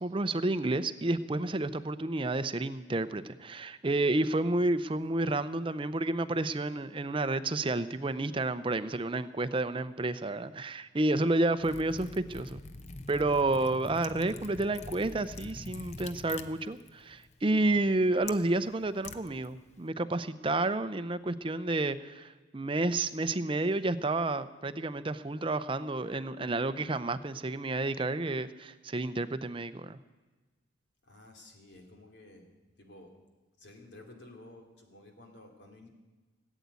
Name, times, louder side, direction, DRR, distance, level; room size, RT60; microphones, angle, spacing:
voice 1, 0.0-12.6 13.1-30.0, right 2 dB, 25° right, 12 dB, 0.6 m, -30 dB
Liquid, 11.6-19.9, left 3 dB, 35° left, 0.7 m, -46 dB
voice 2, 31.0-32.5 32.8-33.2 33.6-35.9, left 2 dB, 60° left, 3 dB, 2.8 m, -53 dB
18.5 x 8.3 x 9.5 m, 1.2 s
head